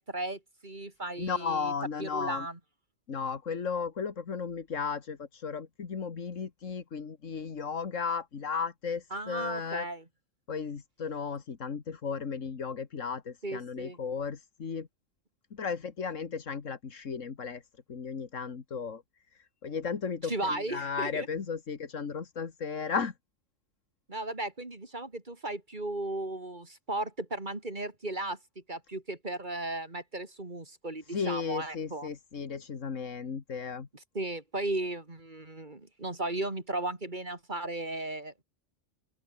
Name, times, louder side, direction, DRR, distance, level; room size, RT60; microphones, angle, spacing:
voice 1, 0.0-1.7 2.0-2.6 9.1-10.0 13.4-14.0 20.2-21.3 24.1-32.1 34.1-38.4, right 2 dB, 40° right, 3.3 m, -36 dB
voice 2, 1.2-2.5 3.1-9.9 10.5-14.9 15.5-17.6 17.9-19.0 19.6-23.1 31.1-33.9, left 6 dB, 85° left, 2.0 m, -35 dB
open air
omnidirectional pair, 1.3 m